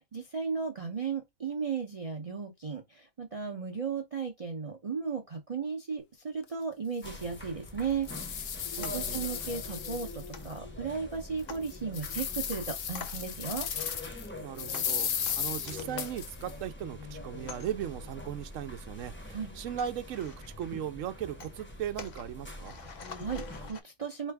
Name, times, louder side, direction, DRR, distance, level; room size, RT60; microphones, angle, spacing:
voice 1, 0.1-8.5 8.8-13.7 19.3-19.5 22.9-24.3, right 5 dB, 35° right, 0.6 m, -35 dB
sound 1, 6.4-6.5 7.0-7.1 7.7-10.5 10.9-11.0 11.5-14.3 14.6-16.5, left 8 dB, 75° left, 1.1 m, -35 dB
sound 2, 7.0-23.7, left 1 dB, 10° left, 0.7 m, -44 dB
sound 3, 8.8-23.8, left 5 dB, 45° left, 0.6 m, -51 dB
voice 2, 8.8-9.3 14.4-22.7, right 10 dB, 75° right, 0.9 m, -38 dB
4.3 x 3.3 x 3.4 m
omnidirectional pair, 1.4 m